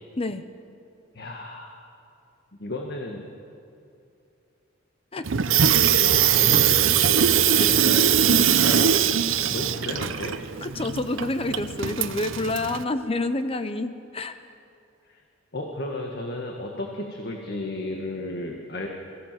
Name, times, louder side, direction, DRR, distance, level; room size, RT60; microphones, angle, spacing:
voice 1, 1.1-1.8 2.6-3.3 6.0-8.9 9.5-10.4 15.1-15.2 15.5-18.9, left 1 dB, 55° left, 1 dB, 1.6 m, -33 dB
voice 2, 5.1-5.6 10.6-14.4, left 2 dB, 30° left, 10 dB, 0.7 m, -28 dB
Water tap faucet / Sink (filling or washing), 5.2-12.8, right 8 dB, 80° right, 0.7 m, -21 dB
23.0 x 15.5 x 7.6 m, 2.6 s
head